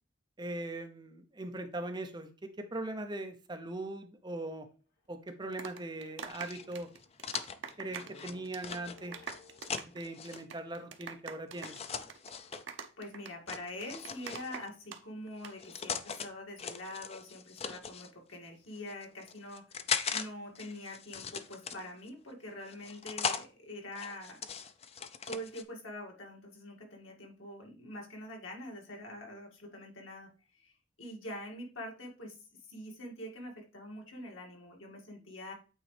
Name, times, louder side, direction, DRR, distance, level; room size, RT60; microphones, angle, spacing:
voice 1, 0.4-4.7 5.1-6.9 7.8-9.2 9.9-11.8, right 2 dB, 20° right, 7 dB, 0.7 m, -40 dB
sound 1, 5.0-5.1 5.6-5.7 5.9-10.0 11.7-12.8, left 3 dB, 55° left, 2.2 m, -60 dB
sound 2, 5.3-8.2 8.5-8.7 9.0-15.0 15.3-15.5, right 6 dB, 65° right, 0.8 m, -44 dB
sound 3, 6.3-10.4 11.6-12.6 13.5-14.7 15.4-16.3 16.6-18.1 18.8-20.3 20.6-22.1 22.7-23.5 23.9-25.6, left 6 dB, 30° left, 0.4 m, -39 dB
voice 2, 13.0-24.4 25.2-32.4 32.7-35.5, left 1 dB, 80° left, 0 dB, 2.2 m, -45 dB
8.8 x 4.0 x 3.3 m, 0.35 s
head